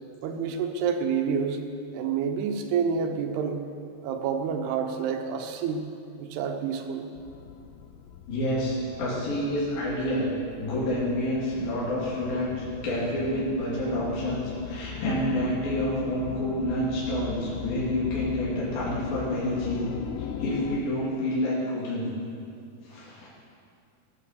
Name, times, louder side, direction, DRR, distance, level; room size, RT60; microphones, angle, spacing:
voice 1, 0.2-1.6 1.9-3.6 4.0-5.8 6.2-7.1, right 6 dB, 80° right, 5 dB, 3.0 m, -28 dB
sound 1, 7.1-20.8, left 8 dB, 80° left, 2.1 m, -39 dB
voice 2, 8.3-10.3 10.6-19.8 20.4-22.1 22.8-23.3, left 1 dB, 60° left, -9 dB, 4.7 m, -28 dB
19.5 x 7.1 x 6.9 m, 2.5 s
omnidirectional pair, 4.7 m